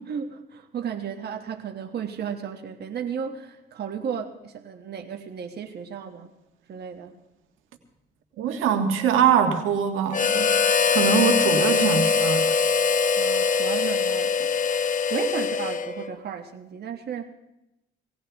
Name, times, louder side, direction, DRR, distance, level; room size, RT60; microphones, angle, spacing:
voice 1, 0.1-6.3 6.7-7.2 13.2-14.5 15.1-17.4, right 7 dB, 55° right, 5 dB, 1.2 m, -34 dB
voice 2, 8.4-10.5 10.9-12.6, right 7 dB, 90° right, 5 dB, 1.5 m, -23 dB
Harmonica, 10.1-16.1, left 5 dB, 40° left, 0.9 m, -22 dB
19.0 x 17.0 x 3.5 m, 0.91 s
cardioid pair, 90°, 20 cm